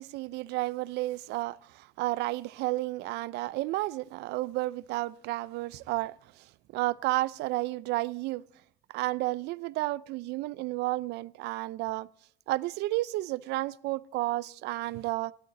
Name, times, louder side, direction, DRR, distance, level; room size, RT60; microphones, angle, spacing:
voice 1, 0.0-6.2 6.7-8.4 8.9-12.1 12.5-15.3, right 18 dB, 85° right, 0.4 m, -32 dB
14.5 x 12.0 x 3.9 m
cardioid pair, 110°, 17 cm